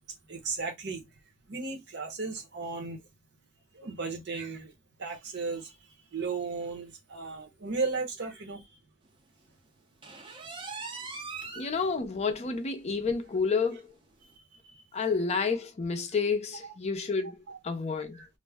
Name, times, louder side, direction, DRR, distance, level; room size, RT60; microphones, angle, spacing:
voice 1, 0.3-1.0 1.5-3.0 3.7-4.7 5.0-5.7 6.1-8.6 14.7-14.8 16.6-16.7 17.5-17.6 18.2-18.3, right 4 dB, 55° right, 0.9 m, -35 dB
sound 1, 10.0-11.7 12.2-12.3 12.7-12.8 13.2-13.3 14.2-14.3, right 4 dB, 25° right, 0.5 m, -40 dB
voice 2, 11.6-13.9 14.9-17.4 17.6-18.2, left 4 dB, 30° left, 0.5 m, -30 dB
2.5 x 2.0 x 3.4 m
head